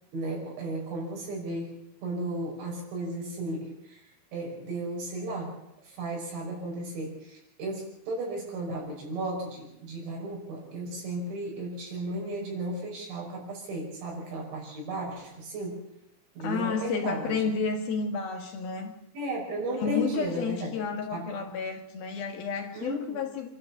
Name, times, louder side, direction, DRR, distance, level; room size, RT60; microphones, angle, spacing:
voice 1, 0.1-5.5 5.8-15.8 16.4-17.4 19.1-20.7 21.1-21.3 22.7-23.2, right 1 dB, 75° right, 8.2 m, -35 dB
voice 2, 16.4-18.9 19.8-23.5, left 5 dB, 60° left, 3.0 m, -31 dB
27.5 x 13.0 x 7.3 m
omnidirectional pair, 5.3 m